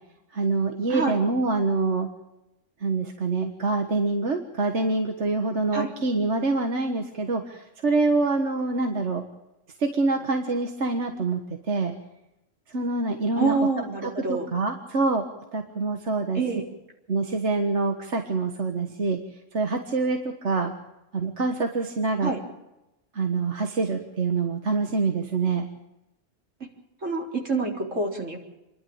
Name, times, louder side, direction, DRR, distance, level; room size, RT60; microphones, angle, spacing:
voice 1, 0.3-2.1 2.8-9.2 9.8-11.9 12.7-13.6 14.0-15.3 15.5-16.4 17.1-19.2 19.5-20.7 21.1-22.3 23.1-25.7, right 3 dB, 65° right, 4 dB, 1.8 m, -25 dB
voice 2, 0.9-1.2 5.7-5.9 13.4-14.5 16.3-16.6 22.2-22.4 27.0-28.4, right 3 dB, 80° right, 0 dB, 4.3 m, -26 dB
28.5 x 11.5 x 8.8 m, 0.95 s
omnidirectional pair, 1.3 m